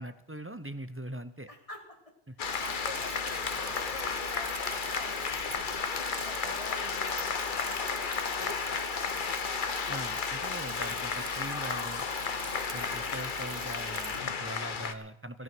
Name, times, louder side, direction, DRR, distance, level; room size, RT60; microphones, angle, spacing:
voice 1, 0.0-1.5 2.3-2.4 9.9-12.0 12.7-15.4, right 1 dB, 15° right, 11 dB, 0.6 m, -41 dB
voice 2, 1.5-2.0 2.4-3.2 3.5-5.2 5.5-8.1 8.4-9.4 10.9-11.1, left 1 dB, 30° left, 3 dB, 1.9 m, -46 dB
sound 1, 2.4-14.9, left 6 dB, 50° left, 1.0 m, -33 dB
Bicycle / Mechanisms, 2.4-14.2, right 8 dB, 55° right, 0.8 m, -44 dB
16.0 x 12.5 x 6.1 m, 0.82 s
omnidirectional pair, 1.1 m